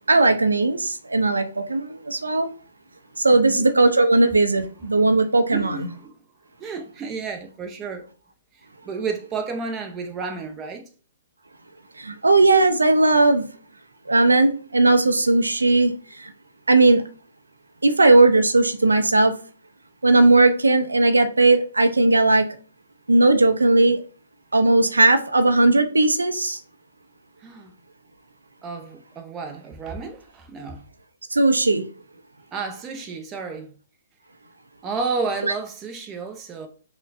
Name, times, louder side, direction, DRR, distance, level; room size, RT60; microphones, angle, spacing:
voice 1, 0.1-2.5 3.2-5.8 12.0-13.4 14.1-15.9 16.7-17.0 17.8-19.3 20.0-22.5 23.1-24.0 24.5-26.6 31.3-31.8, right 2 dB, 80° right, 0.5 m, -17 dB
voice 2, 3.3-3.6 4.9-5.0 5.5-6.1 6.6-8.1 8.8-10.9 27.4-27.7 28.6-30.8 32.5-33.7 34.8-36.7, right 4 dB, 20° right, 0.6 m, -31 dB
5.6 x 2.2 x 2.6 m
figure-of-eight pair, 130°, 0 cm